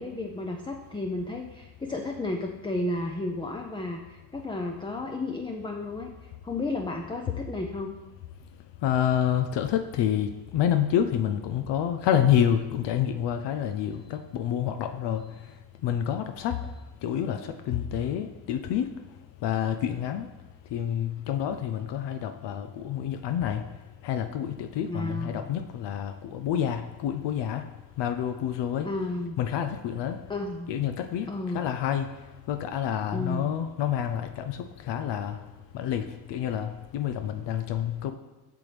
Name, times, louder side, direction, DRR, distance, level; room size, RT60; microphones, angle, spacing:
voice 1, 0.0-8.0 24.9-25.5 28.8-29.4 30.3-30.8 31.3-31.6 33.1-33.5, left 2 dB, 10° left, 2 dB, 0.5 m, -33 dB
voice 2, 8.8-15.2 15.8-16.5 17.0-18.9 19.4-20.3 20.7-23.6 24.0-27.6 28.0-28.9 29.4-30.2 30.7-31.3 31.5-32.1 32.5-35.4 35.7-38.1, left 9 dB, 75° left, 7 dB, 0.5 m, -28 dB
6.8 x 6.2 x 3.3 m, 1.1 s
cardioid pair, 75°, 43 cm